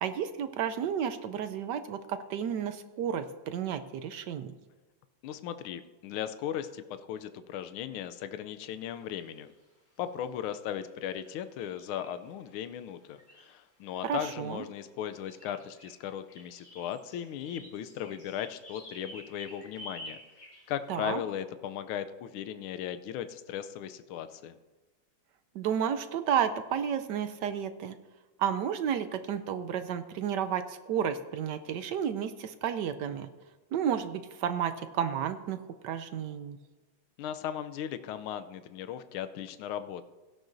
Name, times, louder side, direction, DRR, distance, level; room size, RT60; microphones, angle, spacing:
voice 1, 0.0-4.5 14.0-14.6 20.9-21.2 25.5-28.0 28.4-33.3 33.7-36.6, right 8 dB, 70° right, 10 dB, 1.0 m, -32 dB
voice 2, 5.2-9.5 10.0-20.2 20.7-24.6 37.2-40.0, left 10 dB, 85° left, 11 dB, 1.5 m, -37 dB
sound 1, 9.1-9.6 10.8-10.9 11.2-12.5 13.0-14.4 15.0-20.9, equal, 70° left, 5.7 m, -50 dB
17.0 x 11.5 x 2.6 m, 1.2 s
omnidirectional pair, 2.3 m